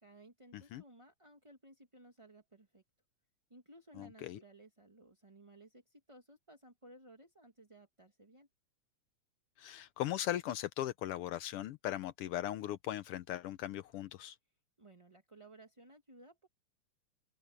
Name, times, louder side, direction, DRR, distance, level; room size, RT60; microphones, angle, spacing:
voice 1, 0.0-2.8 3.5-8.5 14.8-16.5, right 1 dB, 15° right, 1.3 m, -58 dB
voice 2, 4.0-4.4 9.6-14.4, left 12 dB, 85° left, 1.2 m, -39 dB
open air
omnidirectional pair, 3.3 m